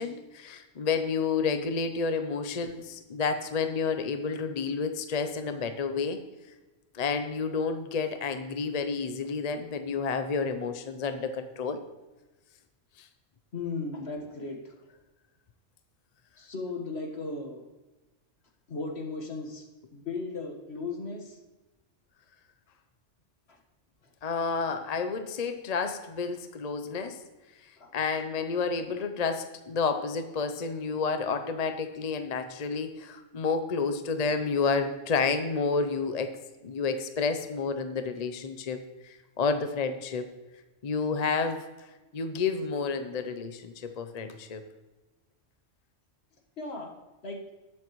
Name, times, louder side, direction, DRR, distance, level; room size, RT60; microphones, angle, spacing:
voice 1, 0.0-6.2 6.9-11.8 13.0-13.1 24.2-27.2 27.6-36.3 36.6-38.8 39.0-40.3 40.8-41.9 42.1-44.6, left 5 dB, 45° left, 8 dB, 0.6 m, -30 dB
voice 2, 13.5-14.7 16.4-17.6 18.7-19.7 19.9-21.4 23.5-23.6 27.8-27.9 46.6-46.9 47.2-47.4, left 3 dB, 60° left, 1 dB, 1.7 m, -36 dB
19.0 x 7.4 x 3.1 m, 1.1 s
omnidirectional pair, 1.3 m